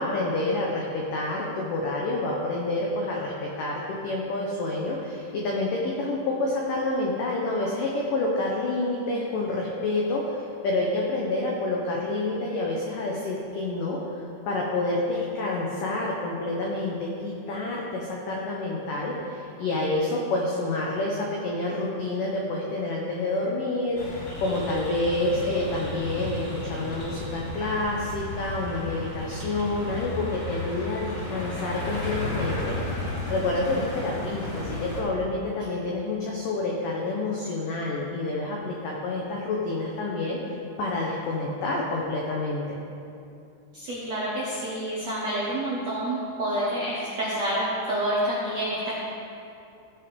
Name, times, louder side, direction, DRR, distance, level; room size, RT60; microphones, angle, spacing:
voice 1, 0.0-3.7 4.0-14.0 14.5-42.6, left 2 dB, 85° left, -2 dB, 1.9 m, -28 dB
sound 1, 24.0-35.0, left 1 dB, 35° left, 3.1 m, -33 dB
voice 2, 43.7-49.0, right 1 dB, 70° right, -7 dB, 1.6 m, -28 dB
17.0 x 6.0 x 5.2 m, 2.6 s
omnidirectional pair, 5.4 m